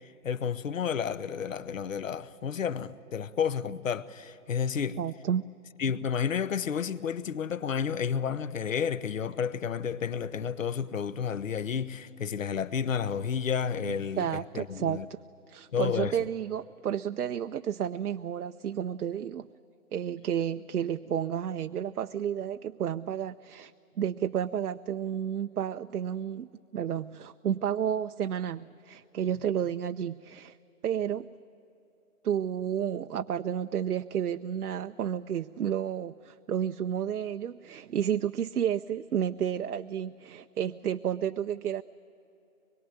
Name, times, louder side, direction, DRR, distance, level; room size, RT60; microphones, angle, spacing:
voice 1, 0.2-5.0 5.8-14.3 14.5-15.1 15.7-16.2, left 7 dB, 60° left, 0.9 m, -31 dB
voice 2, 5.0-5.5 13.8-15.2 15.5-19.5 19.9-23.7 24.0-30.6 30.8-31.3 32.2-41.8, right 9 dB, 75° right, 0.6 m, -31 dB
24.5 x 22.0 x 9.2 m
hypercardioid pair, 170°, 45 cm